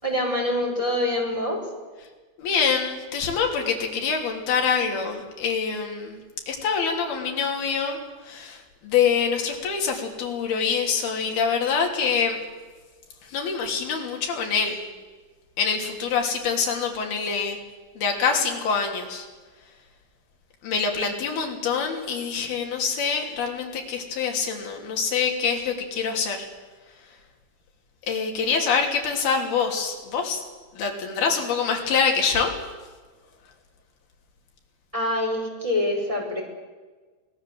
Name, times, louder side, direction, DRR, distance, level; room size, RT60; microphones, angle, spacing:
voice 1, 0.0-1.7 34.9-36.4, left 1 dB, 5° right, -1 dB, 4.6 m, -25 dB
voice 2, 2.4-6.2 6.5-8.0 8.2-12.4 13.3-14.8 15.6-17.6 18.0-19.3 20.6-26.5 28.1-30.4 30.7-32.5, left 6 dB, 55° left, 2 dB, 4.6 m, -25 dB
26.5 x 18.0 x 7.7 m, 1.4 s
omnidirectional pair, 5.8 m